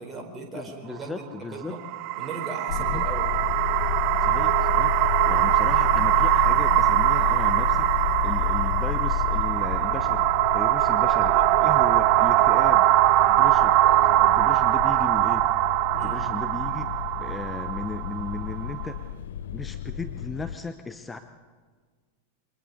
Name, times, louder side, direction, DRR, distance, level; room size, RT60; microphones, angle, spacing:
voice 1, 0.0-1.8 2.2-3.3 10.8-11.8 12.6-12.7 13.8-14.4 16.0-16.2, right 3 dB, 20° right, 2 dB, 4.3 m, -39 dB
voice 2, 0.5-1.8 2.9-3.1 4.2-10.3 10.5-11.3 11.6-12.9 13.2-13.8 14.2-15.5 15.9-19.0 19.5-21.2, left 3 dB, 10° left, 8 dB, 0.9 m, -36 dB
sound 1, 1.7-18.9, right 16 dB, 40° right, 0.5 m, -22 dB
sound 2, 2.7-20.6, left 12 dB, 60° left, 0.7 m, -31 dB
27.5 x 23.5 x 4.2 m, 1.5 s
figure-of-eight pair, 90°, 0 cm